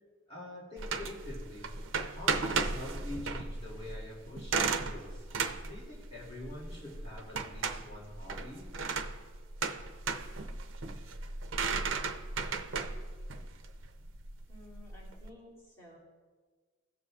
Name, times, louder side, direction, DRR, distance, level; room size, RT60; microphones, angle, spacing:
voice 1, 0.3-1.7 2.1-5.3 5.7-8.7, left 1 dB, 30° left, -6 dB, 2.4 m, -45 dB
sound 1, 0.8-15.3, right 4 dB, 90° right, 0.6 m, -35 dB
voice 2, 14.5-16.0, left 1 dB, 15° left, -8 dB, 2.6 m, -54 dB
17.0 x 6.8 x 2.4 m, 1.4 s
head